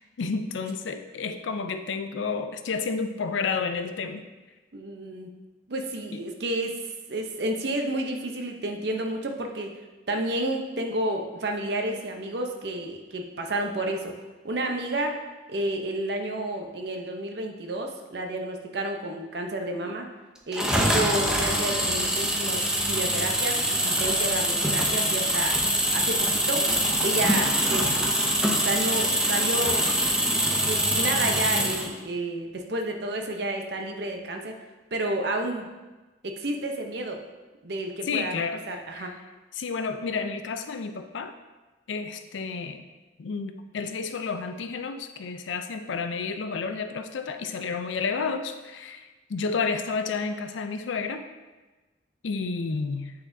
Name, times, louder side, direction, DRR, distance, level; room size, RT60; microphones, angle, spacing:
voice 1, 0.2-4.2 6.1-6.2 38.0-38.6 38.9-39.1 39.5-41.3 41.9-42.8 43.2-51.2 52.2-53.1, left 5 dB, 90° left, 8 dB, 0.5 m, -31 dB
voice 2, 4.7-5.3 5.7-6.7 7.1-9.8 10.1-14.1 14.4-15.1 15.5-20.1 20.5-25.6 25.9-26.7 27.0-27.9 28.6-29.9 30.7-34.6 34.9-35.7 36.2-37.2 37.6-39.1, right 1 dB, 60° right, 3 dB, 0.7 m, -30 dB
sound 1, 20.5-31.9, equal, 5° right, 0.5 m, -24 dB
8.6 x 4.1 x 2.7 m, 1.2 s
head